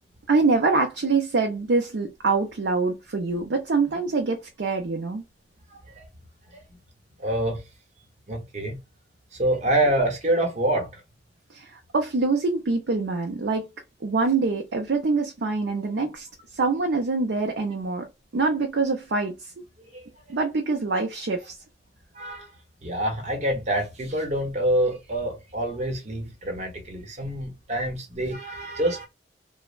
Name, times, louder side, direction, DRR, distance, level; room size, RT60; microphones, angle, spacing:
voice 1, 0.3-5.2 11.5-13.6 14.0-16.3 16.6-18.0 18.3-19.3 20.3-21.6, right 3 dB, 75° right, 0.5 m, -24 dB
voice 2, 7.2-7.6 8.3-8.8 9.3-10.9 22.2-22.5 22.8-29.1, right 1 dB, 40° right, 0.9 m, -26 dB
3.1 x 2.0 x 2.4 m
head